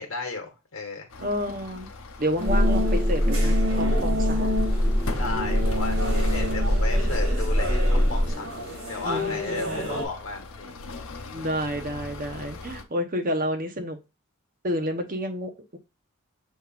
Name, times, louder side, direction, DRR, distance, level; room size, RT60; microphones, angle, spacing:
voice 1, 0.0-1.1 5.2-8.5 8.8-10.7, left 3 dB, 70° left, 1.3 m, -34 dB
sound 1, 1.1-12.8, left 3 dB, 85° left, 0.7 m, -41 dB
voice 2, 1.2-1.9 2.2-4.5 9.0-9.4 9.7-10.0 11.3-14.0 14.6-15.8, equal, 40° right, 0.9 m, -30 dB
sound 2, 2.4-10.1, left 1 dB, 80° right, 2.1 m, -30 dB
sound 3, 2.5-8.3, equal, 15° left, 1.5 m, -23 dB
6.3 x 3.5 x 2.4 m
head